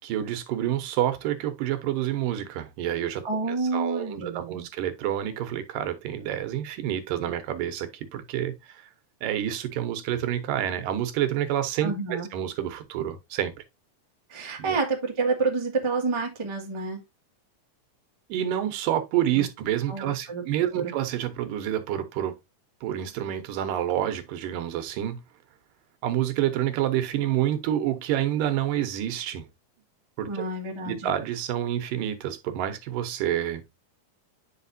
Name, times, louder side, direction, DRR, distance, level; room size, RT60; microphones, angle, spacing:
voice 1, 0.0-8.9 9.2-13.5 14.6-14.8 18.3-22.4 22.8-25.2 26.0-29.5 30.2-30.4 30.8-33.6, right 11 dB, 85° right, 2.6 m, -28 dB
voice 2, 3.2-4.6 11.8-12.3 14.3-17.0 19.3-19.4 19.9-20.4 20.7-20.8 30.3-31.1, right 3 dB, 15° right, 0.9 m, -29 dB
8.9 x 5.8 x 2.6 m
omnidirectional pair, 3.8 m